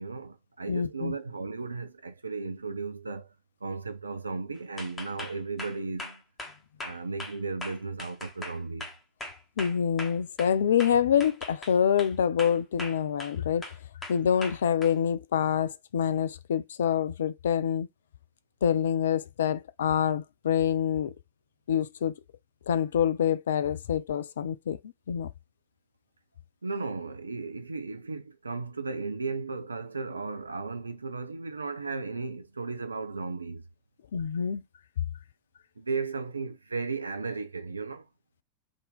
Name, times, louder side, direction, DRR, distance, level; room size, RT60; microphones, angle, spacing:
voice 1, 0.0-3.3 3.6-6.2 6.8-8.9 26.6-33.6 35.8-38.1, right 4 dB, 80° right, 0.5 m, -35 dB
voice 2, 0.7-1.1 9.6-13.7 14.1-17.9 18.6-21.1 21.7-22.2 22.7-24.8 25.1-25.3 34.1-34.6, left 8 dB, 65° left, 0.4 m, -26 dB
sound 1, 4.8-10.5 10.8-12.1 12.4-13.4 13.6-14.9, left 2 dB, 15° left, 1.2 m, -40 dB
3.7 x 2.6 x 3.8 m
figure-of-eight pair, 90°, 0 cm